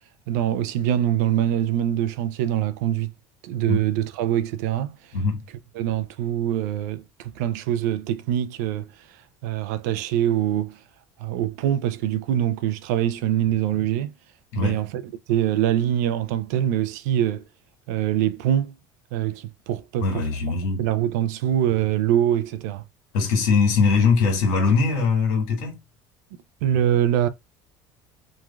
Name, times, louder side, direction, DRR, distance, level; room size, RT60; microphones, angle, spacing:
voice 1, 0.3-3.1 3.4-5.0 5.7-8.9 9.4-10.8 11.2-14.1 14.5-14.9 15.3-17.4 17.9-18.7 19.1-20.1 20.8-22.8 26.6-27.3, right 11 dB, 85° right, 0.4 m, -24 dB
voice 2, 14.5-14.8 20.0-20.9 23.1-25.8, left 5 dB, 80° left, 1.5 m, -21 dB
3.1 x 2.3 x 2.3 m
supercardioid pair, 115°, 9 cm